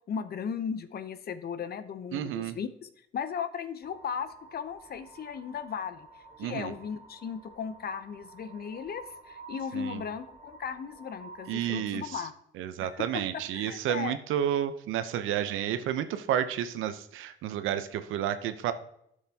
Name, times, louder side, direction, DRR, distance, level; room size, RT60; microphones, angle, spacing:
voice 1, 0.1-6.1 6.4-12.3 12.8-14.2, left 7 dB, 50° left, 11 dB, 0.7 m, -36 dB
voice 2, 2.1-2.6 6.4-6.7 9.7-10.0 11.5-12.2 12.6-18.7, right 10 dB, 90° right, 10 dB, 0.7 m, -31 dB
sound 1, 3.8-11.9, right 3 dB, 25° right, 3.1 m, -51 dB
12.0 x 6.5 x 2.8 m, 0.74 s
cardioid pair, 90°, 20 cm